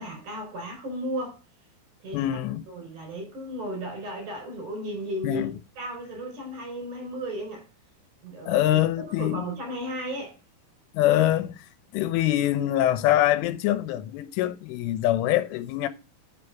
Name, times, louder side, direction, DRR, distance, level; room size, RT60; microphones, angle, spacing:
voice 1, 0.0-1.4 2.0-2.2 2.7-7.7 8.2-8.8 9.2-10.4, right 1 dB, 40° right, 5.4 m, -35 dB
voice 2, 2.1-2.6 5.2-5.5 8.5-9.5 10.9-11.7 11.9-15.9, left 13 dB, 85° left, 3.3 m, -24 dB
9.8 x 6.8 x 4.7 m
omnidirectional pair, 5.6 m